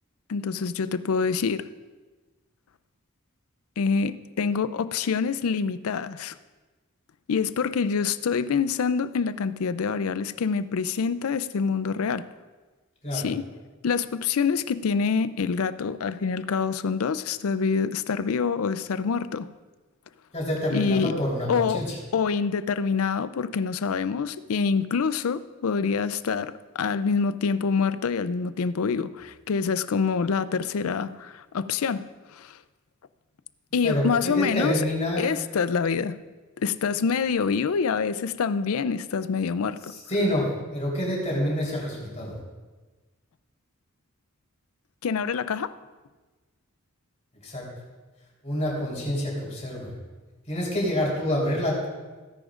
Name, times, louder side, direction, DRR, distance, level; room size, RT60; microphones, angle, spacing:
voice 1, 0.3-1.7 3.8-6.3 7.3-12.2 13.1-13.5 13.8-19.5 20.7-21.1 21.5-21.8 22.1-32.6 33.7-34.8 35.2-36.2 36.6-39.8 45.0-45.7, left 5 dB, 75° left, 0.4 m, -26 dB
voice 2, 20.3-22.0 33.8-35.2 40.1-42.4 47.4-47.6 48.4-49.9 50.5-51.9, equal, 30° left, 3.7 m, -27 dB
17.0 x 10.0 x 2.5 m
head